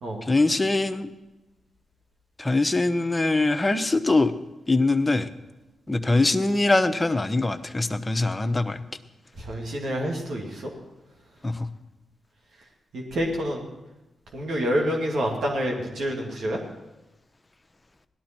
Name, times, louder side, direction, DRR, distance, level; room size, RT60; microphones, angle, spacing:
voice 1, 0.2-1.1 2.4-4.3 4.7-5.3 5.9-8.8 11.4-11.7, left 2 dB, 25° left, 9 dB, 1.0 m, -23 dB
voice 2, 9.4-10.7 12.9-13.6 14.3-16.6, equal, 75° right, -1 dB, 2.5 m, -27 dB
17.5 x 12.0 x 4.5 m, 1.0 s
supercardioid pair, 50°, 0 cm